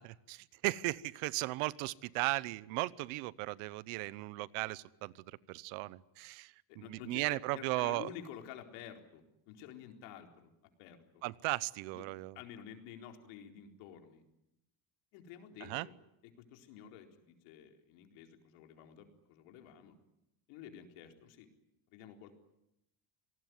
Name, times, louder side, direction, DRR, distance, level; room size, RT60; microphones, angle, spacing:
voice 1, 0.0-6.5 6.9-8.1 11.2-12.4 15.7-15.9, right 21 dB, 80° right, 20 dB, 1.0 m, -36 dB
voice 2, 6.7-10.5 10.8-11.2 11.9-12.0 12.3-14.2 15.1-15.9 16.4-20.0 20.5-21.5 21.9-22.3, left 9 dB, 90° left, 5 dB, 4.3 m, -51 dB
27.0 x 19.5 x 9.5 m, 0.85 s
cardioid pair, 175°, 49 cm